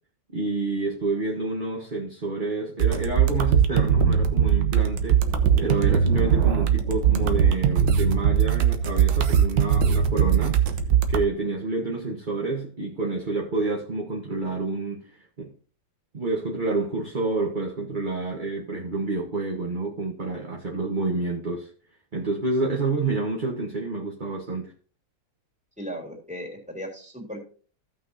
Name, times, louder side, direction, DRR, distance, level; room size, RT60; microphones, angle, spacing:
voice 1, 0.3-5.2 5.6-10.6 11.1-15.5 16.1-21.7 22.1-24.7, right 3 dB, 30° right, 1.3 m, -28 dB
sound 1, 2.8-11.2, right 8 dB, 90° right, 1.6 m, -21 dB
voice 2, 25.8-27.4, equal, 5° right, 3.2 m, -36 dB
16.0 x 6.0 x 2.8 m
omnidirectional pair, 1.9 m